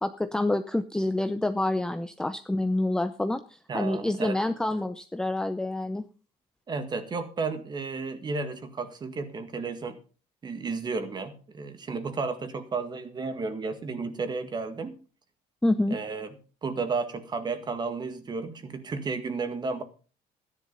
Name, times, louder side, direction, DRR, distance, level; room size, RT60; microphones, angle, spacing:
voice 1, 0.0-6.0 15.6-16.0, left 1 dB, 5° left, 8 dB, 0.6 m, -27 dB
voice 2, 3.7-4.4 6.7-10.0 10.4-15.0 15.9-19.8, right 4 dB, 30° right, 10 dB, 1.8 m, -33 dB
13.0 x 10.5 x 5.3 m, 0.38 s
cardioid pair, 140°, 15 cm